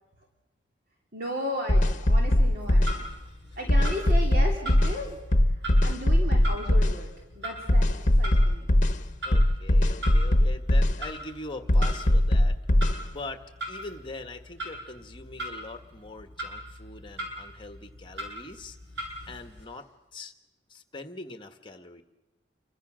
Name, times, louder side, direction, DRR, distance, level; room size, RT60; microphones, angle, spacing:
voice 1, 1.1-3.1 3.6-7.1 7.3-8.7, equal, 55° right, 0 dB, 3.3 m, -35 dB
sound 1, 1.7-3.0 3.7-5.0 5.3-7.0 7.7-9.0 9.3-11.0 11.7-13.0, left 1 dB, 45° left, 1.2 m, -20 dB
Clock, 2.5-19.6, right 1 dB, 70° right, 7.6 m, -41 dB
voice 2, 9.2-12.6 13.0-13.4 13.7-18.8 19.3-20.3 20.7-22.0, left 2 dB, 30° left, 8 dB, 1.6 m, -42 dB
29.0 x 24.0 x 6.4 m, 0.98 s
head